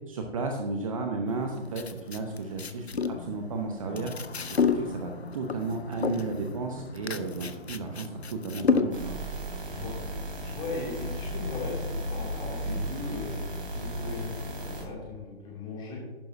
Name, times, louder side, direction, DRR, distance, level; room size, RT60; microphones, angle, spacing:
voice 1, 0.1-4.1 4.5-9.2, right 3 dB, 30° right, 3 dB, 0.8 m, -33 dB
sound 1, 1.3-9.2, left 5 dB, 75° left, 0.7 m, -31 dB
sound 2, 3.9-11.5, right 1 dB, 40° left, 3.5 m, -48 dB
sound 3, 8.9-14.8, equal, 55° right, 3.0 m, -35 dB
voice 2, 10.4-16.0, left 3 dB, 15° left, -4 dB, 2.7 m, -38 dB
11.0 x 10.5 x 2.7 m, 1.2 s
figure-of-eight pair, 135°, 33 cm